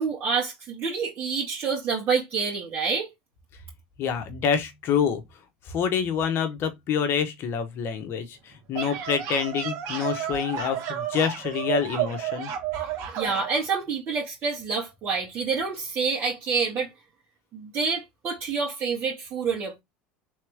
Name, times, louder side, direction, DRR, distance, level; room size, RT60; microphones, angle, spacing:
voice 1, 0.0-3.1 13.1-16.9 17.5-19.8, right 5 dB, 40° right, 1.8 m, -27 dB
voice 2, 4.0-5.2 5.7-12.5, left 7 dB, 50° left, 1.2 m, -27 dB
sound 1, 8.5-13.5, right 9 dB, 65° right, 1.5 m, -31 dB
3.6 x 3.1 x 3.5 m
hypercardioid pair, 90°, 5 cm